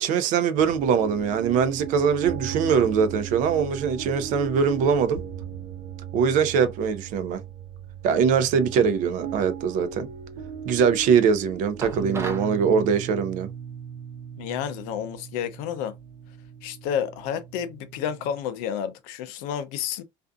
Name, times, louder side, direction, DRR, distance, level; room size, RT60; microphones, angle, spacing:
voice 1, 0.0-5.2 6.1-7.4 8.0-10.1 10.7-13.5, right 6 dB, 55° right, 0.5 m, -22 dB
sound 1, 0.5-18.4, right 8 dB, 85° right, 0.8 m, -37 dB
sound 2, 11.8-12.5, right 3 dB, 15° right, 0.7 m, -34 dB
voice 2, 14.4-15.9 16.6-20.0, left 9 dB, 70° left, 0.5 m, -30 dB
2.5 x 2.4 x 2.3 m
supercardioid pair, 120°, 16 cm